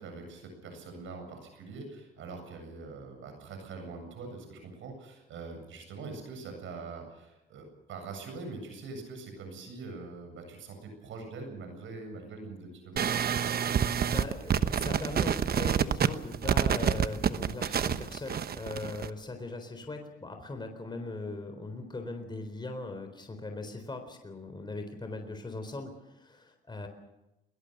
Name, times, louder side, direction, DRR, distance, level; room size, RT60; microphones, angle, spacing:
voice 1, 0.0-13.5, right 3 dB, 80° right, 5 dB, 7.9 m, -43 dB
voice 2, 13.0-13.4 14.1-26.9, left 2 dB, 20° left, 6 dB, 4.0 m, -40 dB
sound 1, 13.0-19.1, right 8 dB, 50° right, 1.1 m, -28 dB
21.5 x 21.0 x 6.7 m, 0.96 s
cardioid pair, 90°, 20 cm